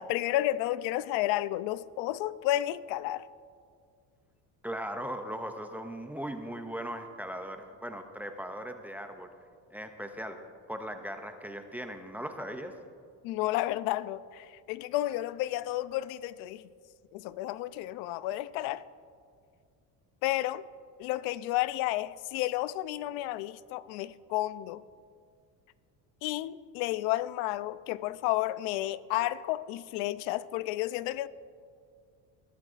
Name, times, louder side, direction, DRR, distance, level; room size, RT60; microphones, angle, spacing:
voice 1, 0.0-3.3 13.2-16.6 17.1-18.9 20.2-20.6 21.0-24.8 26.2-31.3, left 15 dB, 90° left, 0.5 m, -31 dB
voice 2, 4.6-9.3 9.7-10.4 10.7-12.8, equal, 5° right, 0.4 m, -38 dB
21.0 x 13.0 x 2.5 m
cardioid pair, 170°, 35 cm